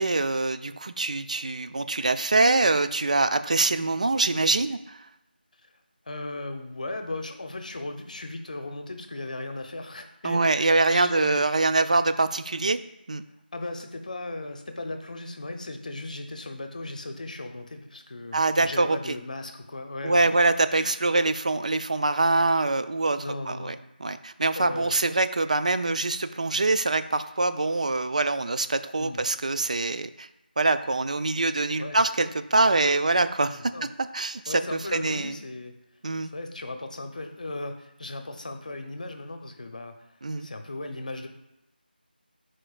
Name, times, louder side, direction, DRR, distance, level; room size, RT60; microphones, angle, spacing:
voice 1, 0.0-5.1 10.2-12.8 13.1-13.2 18.3-19.0 20.0-23.2 23.5-23.7 24.0-30.3 30.6-33.6 34.1-35.4 36.0-36.3 40.2-40.5, right 3 dB, 45° right, 11 dB, 0.4 m, -24 dB
voice 2, 6.1-11.5 13.5-20.3 20.7-21.0 23.2-23.8 24.5-24.9 29.0-29.2 31.8-32.0 33.5-33.9 34.5-35.7 36.2-40.0 40.4-41.3, left 2 dB, 50° left, 6 dB, 0.8 m, -37 dB
9.6 x 4.4 x 2.4 m, 0.90 s
figure-of-eight pair, 170°, 5 cm